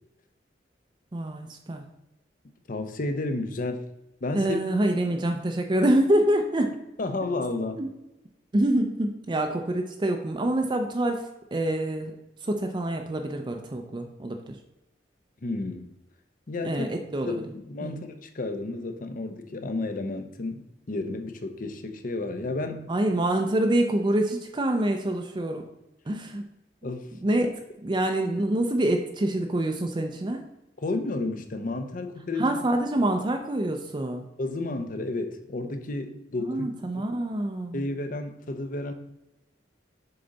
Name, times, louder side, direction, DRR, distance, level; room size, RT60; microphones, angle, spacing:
voice 1, 1.1-1.8 4.3-6.7 7.8-7.9 8.5-12.1 12.4-14.6 16.6-17.3 17.8-18.0 22.9-25.6 26.1-26.4 27.2-30.4 32.4-34.3 36.4-37.8, right 1 dB, 25° right, 4 dB, 0.5 m, -26 dB
voice 2, 2.7-3.9 4.2-4.6 7.0-7.8 15.4-15.9 16.5-16.9 17.2-22.9 26.8-27.1 30.8-32.6 34.4-36.7 37.0-37.1 37.7-38.9, left 2 dB, 50° left, 7 dB, 0.7 m, -32 dB
6.8 x 3.9 x 4.0 m, 0.92 s
head